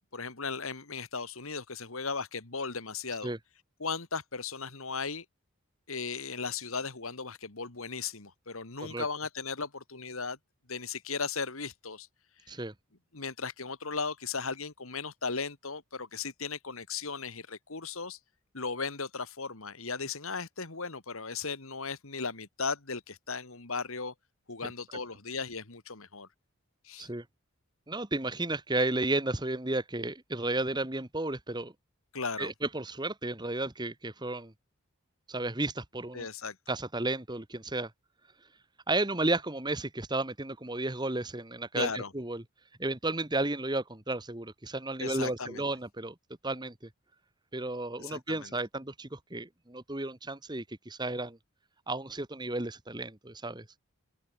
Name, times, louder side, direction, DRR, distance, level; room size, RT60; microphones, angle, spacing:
voice 1, 0.1-3.3 3.8-5.2 5.9-10.4 10.7-12.1 12.5-12.6 13.1-18.2 18.5-24.1 24.5-26.3 26.8-27.1 32.1-32.5 36.1-36.6 41.7-42.1 45.0-45.6 48.0-48.5, left 4 dB, 75° left, 2.4 m, -36 dB
voice 2, 27.9-31.7 32.4-34.5 35.3-36.3 36.7-37.9 38.9-42.4 42.8-46.1 46.4-46.7 47.5-51.4 51.9-53.6, right 2 dB, 20° right, 1.5 m, -33 dB
open air
head